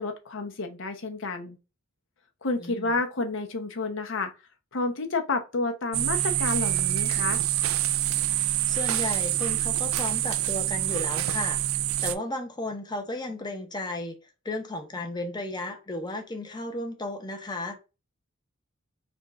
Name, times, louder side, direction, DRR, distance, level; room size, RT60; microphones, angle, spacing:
voice 1, 0.0-1.6 2.4-4.3 4.7-7.4, left 3 dB, 65° left, 0.8 m, -30 dB
voice 2, 2.6-2.9 8.7-14.2 14.4-17.7, left 2 dB, 20° left, 0.8 m, -34 dB
sound 1, 5.9-12.1, right 12 dB, 85° right, 0.4 m, -26 dB
4.3 x 2.4 x 4.1 m
head